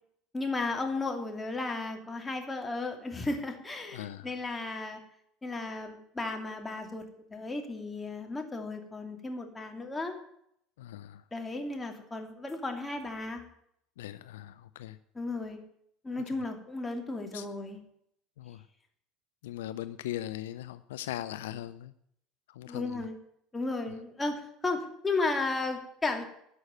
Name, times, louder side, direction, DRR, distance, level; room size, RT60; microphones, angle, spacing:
voice 1, 0.3-5.0 5.4-7.0 7.3-10.1 11.3-13.4 15.1-15.6 16.0-17.8 22.7-23.2 23.5-26.2, left 3 dB, 15° left, 3 dB, 2.6 m, -34 dB
voice 2, 3.9-4.3 10.8-11.2 14.0-15.0 17.3-17.5 18.4-18.6 19.4-21.9 22.5-23.1, left 13 dB, 75° left, 13 dB, 0.4 m, -40 dB
11.5 x 6.4 x 9.1 m, 0.73 s
hypercardioid pair, 70°, 0 cm